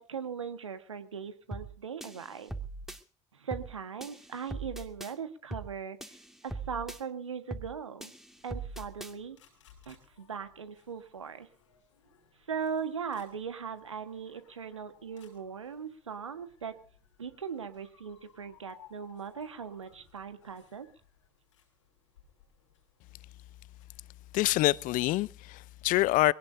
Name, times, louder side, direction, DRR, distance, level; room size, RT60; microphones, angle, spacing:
voice 1, 0.0-2.5 3.3-6.2 6.4-8.1 8.4-9.4 9.9-11.5 12.5-16.7 17.2-20.9, right 6 dB, 90° right, 1.5 m, -39 dB
sound 1, 1.5-1.7 2.0-3.0 3.5-3.7 4.0-5.1 5.5-5.7 6.0-7.0 7.5-7.7 8.0-9.1, right 2 dB, ahead, 2.2 m, -40 dB
sound 2, 8.3-24.5, left 8 dB, 80° left, 5.9 m, -62 dB
voice 2, 24.3-26.3, left 18 dB, 60° left, 0.7 m, -26 dB
24.5 x 18.0 x 2.7 m
figure-of-eight pair, 55°, 15 cm